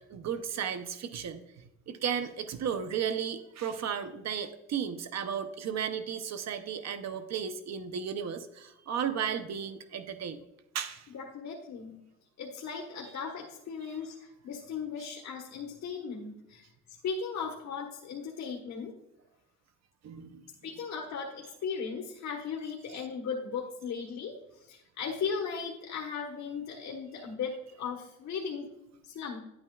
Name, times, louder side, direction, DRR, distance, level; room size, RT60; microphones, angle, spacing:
voice 1, 0.1-10.4 10.7-11.1 20.0-20.4, right 8 dB, 60° right, 9 dB, 0.8 m, -34 dB
voice 2, 11.1-12.0 12.4-18.9 20.6-28.7 29.0-29.4, left 6 dB, 65° left, -1 dB, 1.3 m, -37 dB
10.5 x 8.7 x 2.4 m, 0.88 s
cardioid pair, 90°, 30 cm